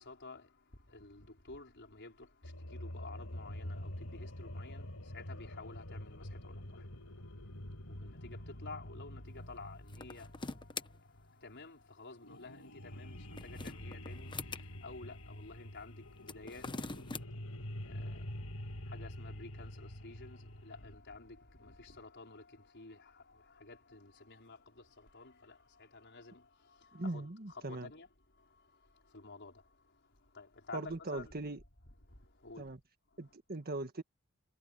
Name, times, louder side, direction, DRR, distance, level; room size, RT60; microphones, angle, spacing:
voice 1, 0.0-31.3 32.0-32.7 33.1-33.3, left 3 dB, 55° left, 5.0 m, -52 dB
sound 1, 2.4-11.5 12.2-20.9, left 1 dB, 85° left, 4.8 m, -46 dB
sound 2, 9.9-10.9 13.1-14.6 16.2-17.2, left 3 dB, 20° left, 1.0 m, -43 dB
voice 2, 26.9-27.9 30.7-31.6 32.6-32.8 33.2-34.0, right 2 dB, 45° right, 1.7 m, -40 dB
head